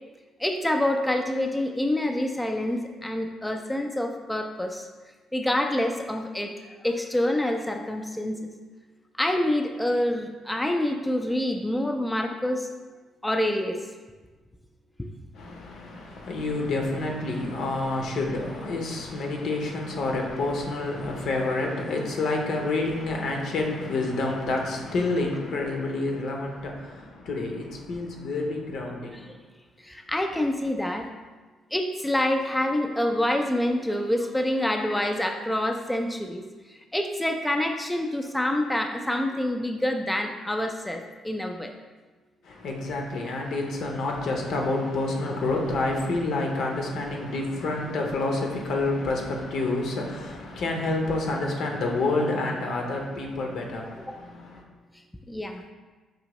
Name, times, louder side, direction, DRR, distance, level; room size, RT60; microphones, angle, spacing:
voice 1, 0.4-4.9 5.3-8.5 9.2-12.7 13.2-13.8 29.8-31.1 31.7-36.4 36.7-41.7 54.1-54.2 55.3-55.6, left 1 dB, 10° left, 3 dB, 0.3 m, -27 dB
voice 2, 15.3-29.4 42.4-54.6, left 2 dB, 75° left, 1 dB, 0.7 m, -28 dB
5.0 x 2.7 x 3.0 m, 1.3 s
cardioid pair, 90°, 0 cm